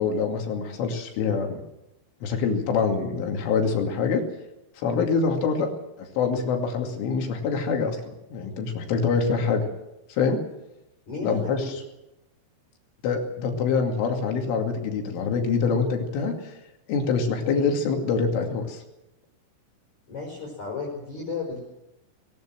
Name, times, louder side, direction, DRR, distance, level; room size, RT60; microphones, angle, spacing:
voice 1, 0.0-1.6 2.2-4.2 4.8-5.7 6.0-9.6 10.1-10.4 11.2-11.6 13.0-16.5 16.9-18.8, left 5 dB, 75° left, 3 dB, 4.9 m, -25 dB
voice 2, 11.1-11.8 20.1-21.7, left 4 dB, 35° left, -3 dB, 6.0 m, -34 dB
19.0 x 18.5 x 7.6 m, 0.93 s
omnidirectional pair, 5.8 m